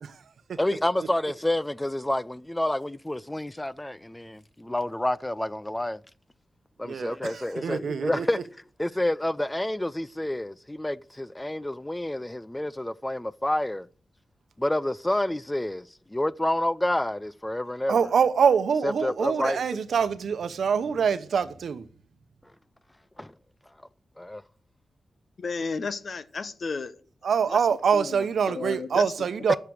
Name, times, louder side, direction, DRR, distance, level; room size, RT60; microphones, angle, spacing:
voice 1, 0.6-6.0 6.8-8.4 8.8-13.9 14.6-18.0 18.8-19.6 23.2-23.3 24.2-24.4 29.5-29.6, left 1 dB, 10° left, 0.4 m, -28 dB
voice 2, 6.8-8.4 17.9-21.9 27.2-29.6, right 6 dB, 80° right, 0.9 m, -25 dB
voice 3, 25.4-27.0 27.5-27.6 27.9-29.1, left 4 dB, 55° left, 0.9 m, -33 dB
10.5 x 6.8 x 6.4 m
wide cardioid pair, 115°, 0 cm